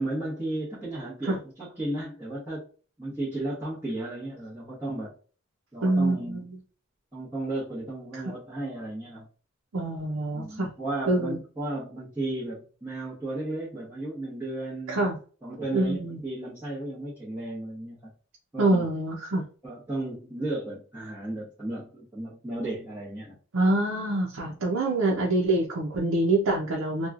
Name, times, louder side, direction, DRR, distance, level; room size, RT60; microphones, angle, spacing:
voice 1, 0.0-2.6 3.0-5.1 5.7-6.5 7.1-9.3 10.3-15.1 15.4-18.0 18.5-18.9 19.6-23.4, right 2 dB, 10° right, -11 dB, 0.9 m, -34 dB
voice 2, 5.8-6.4 9.7-10.7 11.1-11.4 14.9-15.2 15.7-16.2 18.6-19.4 23.5-27.1, right 2 dB, 90° right, -2 dB, 0.6 m, -25 dB
3.0 x 2.3 x 2.4 m, 0.38 s
head